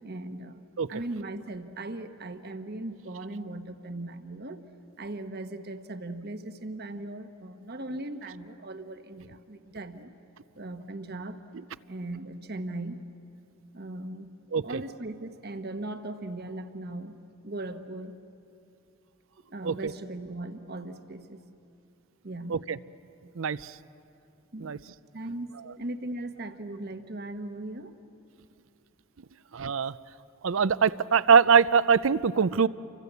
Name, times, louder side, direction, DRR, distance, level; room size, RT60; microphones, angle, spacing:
voice 1, 0.0-0.6 0.9-4.6 5.0-10.1 10.6-11.4 11.9-13.1 13.7-14.3 14.6-17.2 17.4-18.2 19.5-21.4 22.2-22.7 24.5-24.8 25.1-27.9, right 2 dB, 50° right, 8 dB, 1.2 m, -38 dB
voice 2, 23.4-23.8 24.6-24.8 29.5-30.0 30.4-32.7, right 6 dB, 65° right, 17 dB, 0.5 m, -23 dB
29.0 x 24.5 x 8.2 m, 2.7 s
head